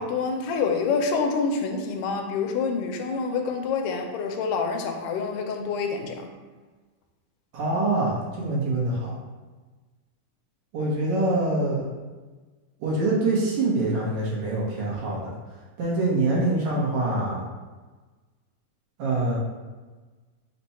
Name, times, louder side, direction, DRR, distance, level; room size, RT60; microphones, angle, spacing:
voice 1, 0.0-6.3, left 5 dB, 90° left, 4 dB, 2.1 m, -27 dB
voice 2, 7.5-9.1 10.7-11.8 12.8-15.3 15.8-17.4 19.0-19.4, right 2 dB, 70° right, -4 dB, 2.3 m, -25 dB
5.6 x 2.2 x 4.1 m, 1.3 s
omnidirectional pair, 3.6 m